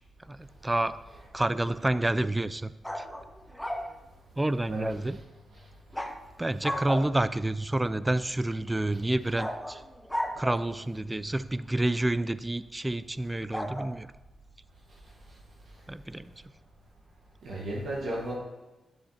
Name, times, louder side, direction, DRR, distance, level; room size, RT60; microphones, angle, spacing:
voice 1, 0.2-1.0 1.3-3.1 4.4-5.2 6.4-9.8 10.4-14.1 15.9-16.3, right 1 dB, 20° right, 15 dB, 0.4 m, -29 dB
sound 1, 2.8-3.9 5.9-6.2 6.6-7.4 9.4-10.8 13.5-13.9, equal, 10° left, 0.9 m, -34 dB
voice 2, 17.4-18.3, right 1 dB, 75° right, -5 dB, 1.4 m, -34 dB
9.2 x 7.3 x 2.8 m, 1.1 s
supercardioid pair, 45°, 0 cm